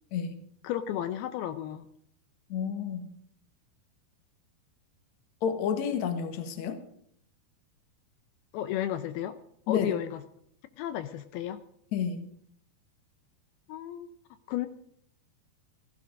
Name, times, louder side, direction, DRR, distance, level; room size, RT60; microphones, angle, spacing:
voice 1, 0.6-1.9 8.5-9.4 9.7-10.2 10.8-11.6 13.7-14.1 14.5-14.7, left 12 dB, 80° left, 9 dB, 2.6 m, -33 dB
voice 2, 2.5-3.0 5.4-6.8 9.7-10.0 11.9-12.3, left 7 dB, 55° left, 7 dB, 2.4 m, -30 dB
15.5 x 14.5 x 5.3 m, 0.68 s
omnidirectional pair, 4.6 m